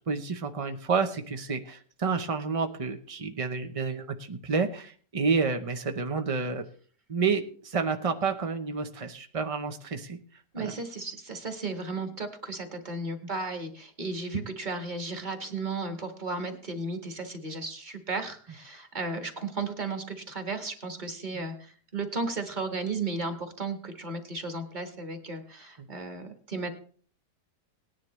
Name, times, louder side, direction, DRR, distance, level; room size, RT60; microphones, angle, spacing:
voice 1, 0.1-6.6 7.1-10.2 10.6-10.7 21.3-21.4, right 5 dB, 55° right, 6 dB, 0.3 m, -29 dB
voice 2, 10.5-26.7, right 3 dB, 30° right, 6 dB, 1.5 m, -34 dB
18.5 x 10.5 x 3.1 m, 0.44 s
omnidirectional pair, 1.9 m